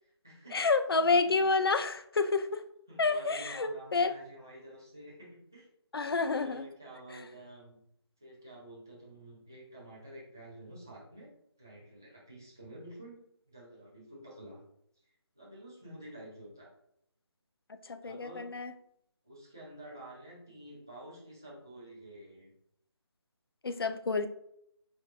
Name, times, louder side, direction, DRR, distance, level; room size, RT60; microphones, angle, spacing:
voice 1, 0.0-0.6 2.9-5.7 6.2-7.8 8.2-11.3 11.6-13.2 13.5-14.6 15.3-16.7 18.0-18.4 19.2-22.5, right 1 dB, 5° right, -7 dB, 0.4 m, -49 dB
voice 2, 0.5-2.6 3.0-4.1 5.9-6.7 17.9-18.7 23.6-24.3, left 4 dB, 60° left, 10 dB, 0.4 m, -29 dB
4.9 x 4.3 x 2.4 m, 0.72 s
figure-of-eight pair, 170°, 14 cm